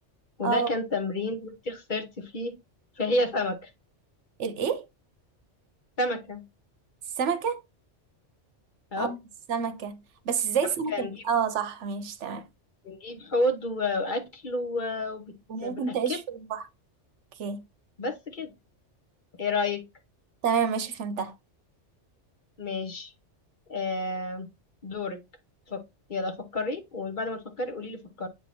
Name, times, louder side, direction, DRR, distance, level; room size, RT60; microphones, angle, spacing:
voice 1, 0.4-2.5 3.0-3.7 6.0-6.4 8.9-9.1 10.9-11.2 12.8-15.3 15.6-16.2 18.0-18.5 19.4-19.8 22.6-23.1 23.7-24.5 24.8-25.2 25.7-25.8 26.1-28.3, left 2 dB, 45° left, 1.0 m, -30 dB
voice 2, 4.4-4.9 7.2-7.6 9.0-9.2 9.5-10.0 10.2-12.4 15.5-16.6 17.4-17.6 20.4-21.3, right 6 dB, 75° right, 1.1 m, -28 dB
8.2 x 2.9 x 4.2 m
omnidirectional pair, 1.2 m